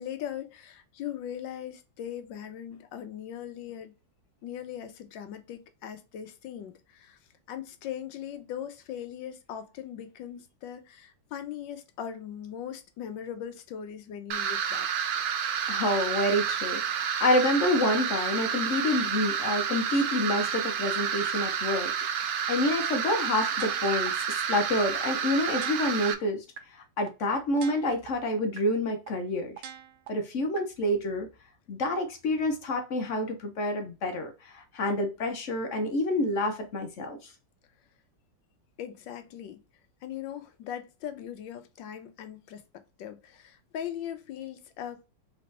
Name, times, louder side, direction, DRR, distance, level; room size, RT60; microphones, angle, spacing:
voice 1, 0.0-3.9 4.4-7.2 7.5-14.9 38.8-39.6 40.0-45.0, left 9 dB, 80° left, 1.4 m, -39 dB
sound 1, 14.3-26.1, right 8 dB, 70° right, 0.9 m, -30 dB
voice 2, 15.7-21.9 22.5-24.1 24.5-26.4 26.7-29.6 30.1-31.3 31.7-37.3, left 1 dB, 55° left, 0.8 m, -28 dB
sound 2, 23.6-24.1 24.6-24.7 25.1-25.2 25.6-26.1 26.6-26.7 27.1-27.2 27.6-28.1 28.6-28.7 29.1-29.2 29.6-30.1 30.6-30.7, right 10 dB, 90° right, 1.5 m, -42 dB
4.2 x 3.3 x 3.2 m
omnidirectional pair, 2.0 m